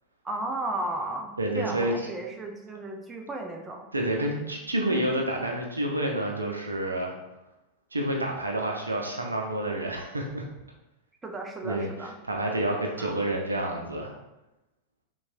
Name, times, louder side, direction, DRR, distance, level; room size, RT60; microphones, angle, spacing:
voice 1, 0.2-1.3 1.6-3.9 11.2-12.2 13.0-13.1, right 2 dB, 15° right, 2 dB, 0.6 m, -34 dB
voice 2, 1.4-1.9 3.9-7.1 7.9-10.4 11.6-11.9 12.2-14.2, right 1 dB, 80° right, 1 dB, 0.6 m, -29 dB
5.7 x 2.3 x 2.7 m, 0.93 s
figure-of-eight pair, 90°, 0 cm